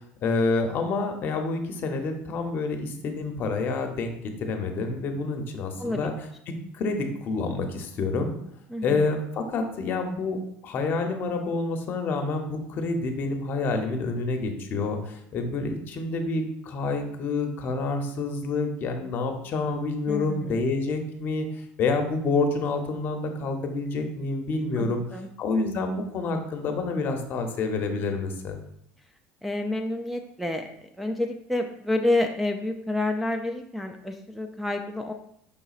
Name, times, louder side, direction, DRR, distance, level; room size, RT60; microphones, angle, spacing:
voice 1, 0.2-4.1 4.4-6.1 6.7-8.4 8.8-21.5 21.8-28.6, left 3 dB, 45° left, 5 dB, 0.7 m, -28 dB
voice 2, 8.7-9.1 20.1-20.6 24.8-25.3 29.4-35.1, left 2 dB, ahead, 2 dB, 0.3 m, -29 dB
5.5 x 3.9 x 2.4 m, 0.73 s
cardioid pair, 125°, 5 cm